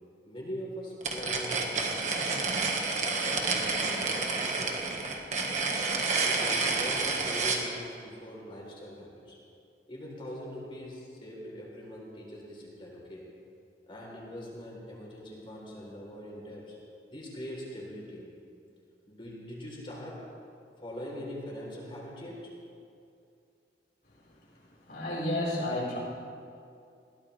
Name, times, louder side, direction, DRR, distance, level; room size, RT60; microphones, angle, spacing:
voice 1, 0.3-2.0 2.9-4.8 6.2-9.4 9.9-13.3 13.9-16.8 17.1-18.3 19.1-20.3 20.8-22.5, equal, 30° left, -3 dB, 3.8 m, -42 dB
sound 1, 1.0-7.6, right 3 dB, 40° right, 1.6 m, -29 dB
voice 2, 24.7-26.0, left 1 dB, 60° left, -5 dB, 4.7 m, -31 dB
22.0 x 16.0 x 3.4 m, 2.5 s
head